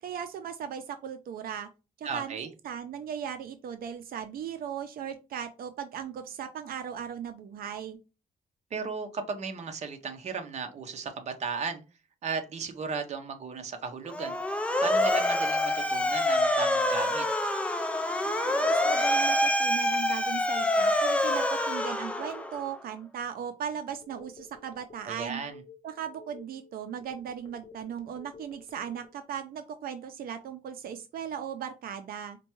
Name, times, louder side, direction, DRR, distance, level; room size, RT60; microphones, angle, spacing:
voice 1, 0.0-1.7 2.0-8.0 18.2-25.4 25.8-32.4, right 8 dB, 85° right, 9 dB, 0.4 m, -37 dB
voice 2, 2.0-2.5 8.7-11.8 12.2-14.4 14.8-17.3 25.0-25.6, right 5 dB, 50° right, 6 dB, 0.7 m, -35 dB
Motor vehicle (road) / Siren, 14.1-22.7, left 1 dB, 10° left, 0.4 m, -26 dB
Telephone, 24.0-29.2, left 3 dB, 35° left, 0.8 m, -52 dB
4.4 x 2.2 x 3.0 m, 0.30 s
wide cardioid pair, 155°, 15 cm